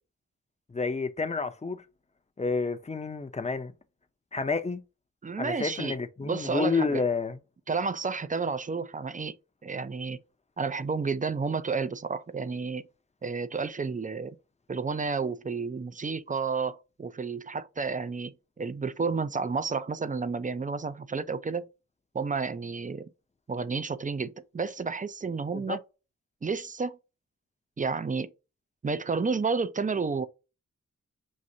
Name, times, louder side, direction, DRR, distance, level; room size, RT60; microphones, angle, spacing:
voice 1, 0.7-1.8 2.4-3.7 4.3-4.8 5.4-7.4 25.5-25.8, left 4 dB, 20° left, 0.6 m, -29 dB
voice 2, 5.2-7.0 7.7-9.4 9.6-10.2 10.6-12.9 13.2-14.4 14.7-21.7 22.1-23.1 23.5-25.8 26.4-27.0 27.8-28.3 28.8-30.3, right 4 dB, 25° right, 0.4 m, -31 dB
6.3 x 2.5 x 2.7 m
cardioid pair, 60°, 30 cm